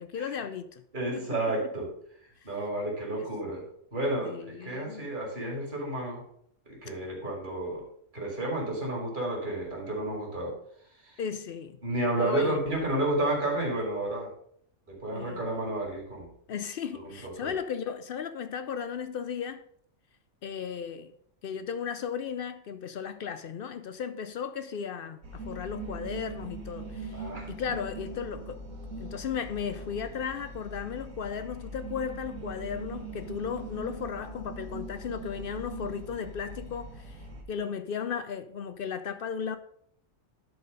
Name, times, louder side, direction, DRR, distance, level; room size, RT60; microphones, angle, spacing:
voice 1, 0.0-0.8 1.1-1.3 2.4-2.5 3.2-3.3 4.2-5.1 11.2-11.8 12.2-12.6 15.1-15.4 16.5-19.7 20.4-21.1 21.4-28.6 29.0-37.2 37.5-39.6, left 7 dB, 65° left, 0.6 m, -35 dB
voice 2, 0.9-1.9 2.4-3.6 3.9-6.2 6.7-7.9 8.1-10.5 11.0-11.2 11.8-14.3 14.9-16.3 17.0-17.5 27.1-27.5, right 1 dB, 40° right, 2.5 m, -31 dB
sound 1, 25.2-37.4, right 2 dB, 90° right, 1.6 m, -41 dB
10.5 x 4.3 x 5.2 m
omnidirectional pair, 1.4 m